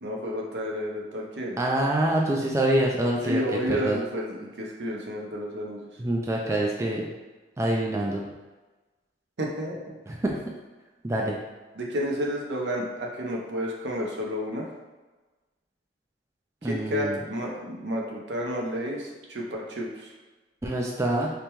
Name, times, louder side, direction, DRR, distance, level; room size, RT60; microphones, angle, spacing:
voice 1, 0.0-1.6 3.3-5.8 9.4-10.0 11.8-14.6 16.6-20.1, equal, 70° right, -1 dB, 0.7 m, -31 dB
voice 2, 1.6-3.4 3.7-4.0 6.0-7.0 7.6-8.2 10.1-10.4 11.0-11.4 16.6-17.2 20.6-21.3, right 1 dB, 15° right, -1 dB, 0.3 m, -25 dB
5.1 x 2.2 x 2.9 m, 1.2 s
head